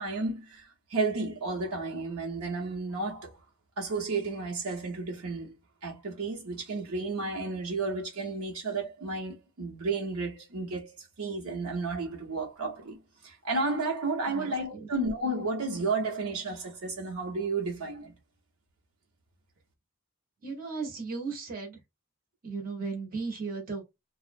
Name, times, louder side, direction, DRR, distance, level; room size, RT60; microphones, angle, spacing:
voice 1, 0.0-3.3 3.8-5.5 5.8-13.0 13.2-18.1, right 3 dB, 70° right, 0.8 m, -32 dB
voice 2, 14.3-14.9 20.4-21.8 22.4-23.8, right 4 dB, 40° right, 0.8 m, -36 dB
2.4 x 2.1 x 2.5 m
head